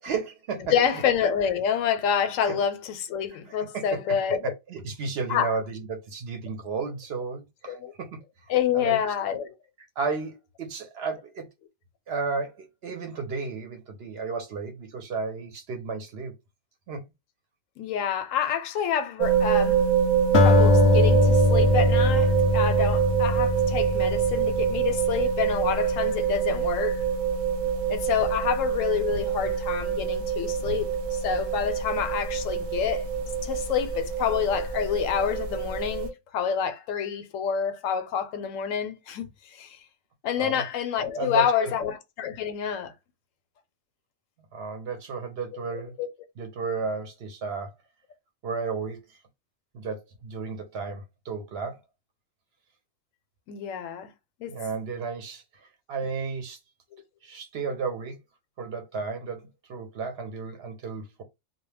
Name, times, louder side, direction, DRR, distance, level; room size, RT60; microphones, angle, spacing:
voice 1, 0.0-0.7 2.5-2.6 3.5-4.2 4.4-8.2 8.7-9.0 10.0-11.5 12.1-16.3 16.9-17.0 40.4-40.6 41.2-41.7 44.5-45.9 46.4-47.7 48.4-49.2 49.7-51.8 54.5-56.6 57.2-58.2 58.6-59.4 59.7-61.2, right 4 dB, 65° right, 0.7 m, -33 dB
voice 2, 0.6-4.4 5.3-5.5 7.7-7.9 8.5-9.5 17.8-19.9 20.3-27.0 27.9-33.1 33.4-39.8 40.2-42.9 45.5-46.1 53.5-54.1 54.4-54.5, left 8 dB, 85° left, 1.0 m, -28 dB
sound 1, 19.2-36.1, right 7 dB, 90° right, 1.0 m, -25 dB
Acoustic guitar, 20.3-24.8, left 2 dB, 65° left, 0.7 m, -21 dB
2.2 x 2.1 x 3.2 m
omnidirectional pair, 1.3 m